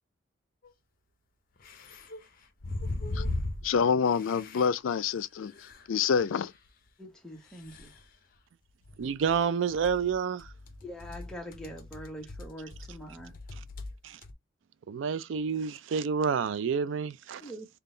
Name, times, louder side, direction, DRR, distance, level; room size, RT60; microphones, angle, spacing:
sound 1, 0.6-0.7 1.6-3.8 4.0-4.7 5.0-5.1 5.4-6.3 6.7-6.8 7.5-8.0 8.8-9.4 9.7-14.0 14.2-14.3, left 2 dB, 45° left, 0.7 m, -39 dB
voice 1, 3.6-5.5 5.9-6.5, left 6 dB, 85° left, 0.4 m, -27 dB
voice 2, 7.0-7.9 10.8-13.3 17.4-17.7, equal, 5° left, 0.9 m, -43 dB
voice 3, 9.0-10.5 14.0-14.2 14.9-17.5, right 6 dB, 70° right, 0.4 m, -29 dB
3.7 x 2.3 x 3.8 m
head